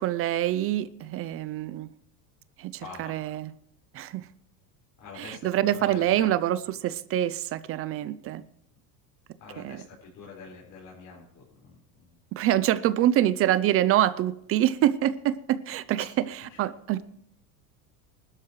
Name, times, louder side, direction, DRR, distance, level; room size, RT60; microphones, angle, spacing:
voice 1, 0.0-1.9 2.6-3.5 3.9-4.3 5.2-8.4 9.6-9.8 12.4-17.0, right 12 dB, 30° right, 16 dB, 0.4 m, -26 dB
voice 2, 2.8-3.4 5.0-6.3 9.4-12.2 16.0-16.1 16.5-16.6, left 5 dB, 45° left, -4 dB, 4.8 m, -46 dB
20.5 x 12.0 x 3.1 m, 0.75 s
supercardioid pair, 135°, 45 cm